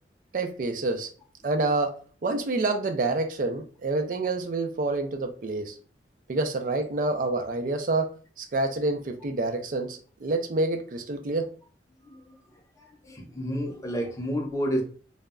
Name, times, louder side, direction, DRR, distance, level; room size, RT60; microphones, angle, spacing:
voice 1, 0.3-1.1 1.4-1.9 2.2-5.7 6.3-8.1 8.4-11.5, right 2 dB, 50° right, 0.4 m, -27 dB
voice 2, 12.0-12.4 12.8-14.8, equal, 20° left, 0.5 m, -30 dB
2.2 x 2.0 x 3.5 m
head